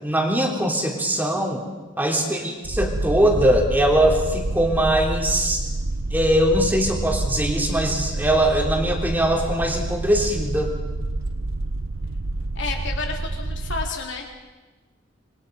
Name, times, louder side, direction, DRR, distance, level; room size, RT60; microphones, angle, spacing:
voice 1, 0.0-1.6 2.0-5.6 6.1-10.7, right 1 dB, 10° right, 0 dB, 3.3 m, -21 dB
sound 1, 2.6-13.9, right 2 dB, 80° right, 1.1 m, -28 dB
voice 2, 12.5-14.3, left 4 dB, 60° left, 1 dB, 3.7 m, -31 dB
27.0 x 22.5 x 5.3 m, 1.2 s
head